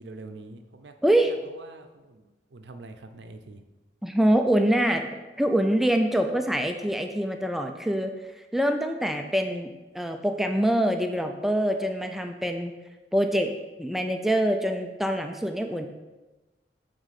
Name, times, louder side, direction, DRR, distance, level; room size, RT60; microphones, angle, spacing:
voice 1, 0.0-0.9 1.3-3.6, right 2 dB, 80° right, 7 dB, 0.6 m, -45 dB
voice 2, 1.0-1.3 4.0-8.1 8.5-9.7 9.9-12.7 13.1-13.5 13.8-15.9, right 1 dB, ahead, 5 dB, 0.3 m, -25 dB
7.8 x 3.7 x 4.2 m, 1.1 s
head